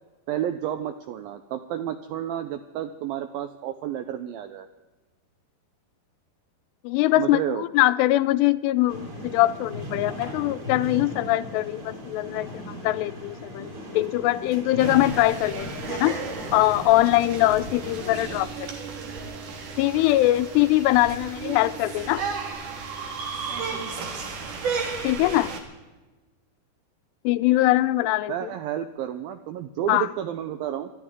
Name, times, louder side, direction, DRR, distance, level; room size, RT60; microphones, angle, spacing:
voice 1, 0.3-4.7 7.2-7.7 28.3-30.9, right 10 dB, 85° right, 9 dB, 2.1 m, -31 dB
voice 2, 6.8-16.2 16.5-18.7 19.8-22.2 25.0-25.5 27.2-28.5 29.9-30.1, left 16 dB, 85° left, 14 dB, 2.7 m, -22 dB
sound 1, 8.9-18.4, equal, 30° right, 4.2 m, -38 dB
sound 2, 14.8-25.6, right 4 dB, 55° right, 2.9 m, -34 dB
24.5 x 12.0 x 3.6 m, 1.2 s
omnidirectional pair, 4.9 m